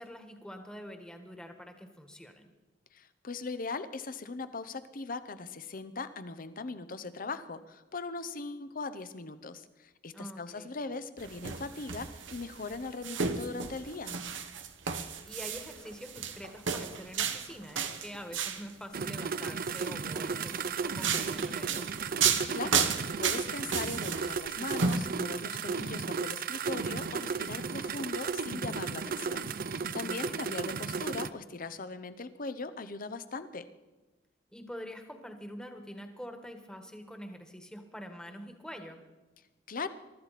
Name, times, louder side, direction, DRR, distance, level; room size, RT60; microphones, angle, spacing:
voice 1, 0.0-2.5 10.1-10.8 14.8-15.0 15.2-21.9 29.9-30.6 34.5-39.0, equal, 5° left, 5 dB, 1.5 m, -45 dB
voice 2, 2.9-14.2 22.5-22.9 23.2-33.7 39.7-39.9, left 3 dB, 50° left, 12 dB, 0.8 m, -40 dB
sound 1, 11.2-18.7 19.5-19.9 20.5-25.0, right 6 dB, 85° right, 1.2 m, -33 dB
sound 2, 18.9-31.3, right 5 dB, 50° right, 0.5 m, -35 dB
23.0 x 13.0 x 4.2 m, 1.1 s
head